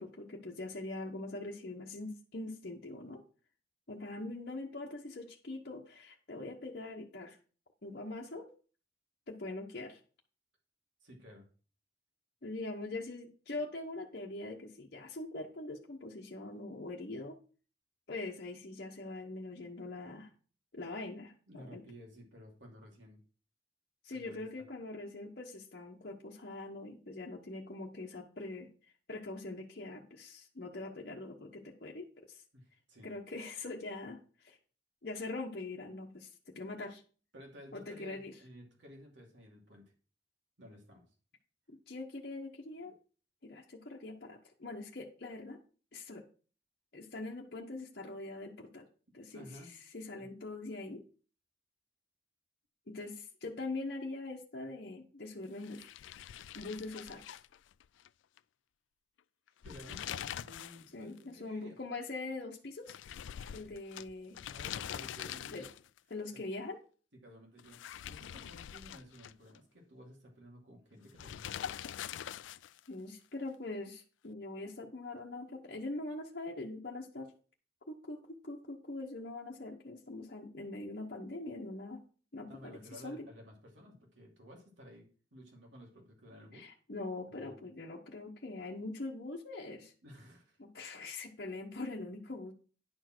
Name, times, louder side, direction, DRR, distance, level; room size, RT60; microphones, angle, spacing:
voice 1, 0.0-3.2 3.9-7.4 7.8-8.5 9.3-10.0 12.4-17.4 18.1-20.3 20.7-21.9 24.0-28.7 29.1-32.4 33.0-34.6 35.0-37.0 37.7-38.3 41.7-43.0 43.4-45.6 45.9-46.3 46.9-48.9 49.1-51.0 52.9-55.9 56.5-57.4 60.9-62.9 63.5-64.4 65.2-65.7 66.1-66.8 72.9-77.3 77.9-82.0 82.3-83.3 86.5-89.9 90.6-92.5, left 2 dB, 55° left, -2 dB, 1.0 m, -43 dB
voice 2, 11.0-11.5 21.5-23.2 24.1-24.6 32.5-33.1 37.3-39.8 40.6-41.0 42.8-42.9 49.3-49.7 50.2-50.3 59.6-61.8 64.5-65.6 67.2-71.9 82.5-86.7 87.4-87.6 90.0-90.6, equal, 85° right, 0 dB, 2.6 m, -54 dB
sound 1, 55.6-58.1 58.4-58.5 59.5-60.9 61.2-61.3 62.9-66.0 67.6-69.6 71.2-72.9, left 10 dB, 85° left, 0.3 m, -44 dB
10.5 x 4.5 x 6.1 m, 0.39 s
head